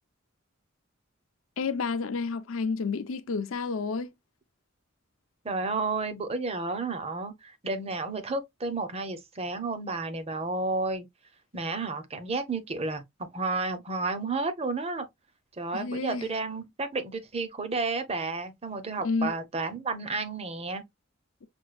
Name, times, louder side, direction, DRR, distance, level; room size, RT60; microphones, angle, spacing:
voice 1, 1.6-4.1 15.7-16.3 19.0-19.3, left 4 dB, 85° left, 0.5 m, -30 dB
voice 2, 5.4-11.0 11.5-15.1 15.6-20.8, right 3 dB, 30° right, 0.7 m, -31 dB
6.0 x 2.3 x 2.4 m
head